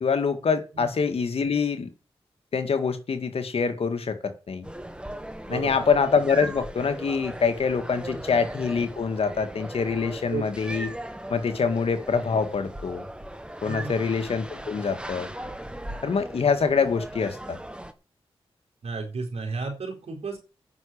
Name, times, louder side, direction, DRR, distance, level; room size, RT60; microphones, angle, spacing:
voice 1, 0.0-1.9 2.5-4.7 5.5-10.9 11.3-13.1 13.6-15.3 16.0-17.6, left 5 dB, 70° left, 9 dB, 1.9 m, -25 dB
sound 1, 4.6-17.9, right 1 dB, 10° right, 1.7 m, -38 dB
voice 2, 5.5-5.8 8.2-8.3 10.3-10.4 13.6-14.1 18.8-20.4, right 4 dB, 80° right, 1 dB, 4.3 m, -33 dB
9.2 x 6.4 x 8.5 m, 0.32 s
cardioid pair, 55°, 10 cm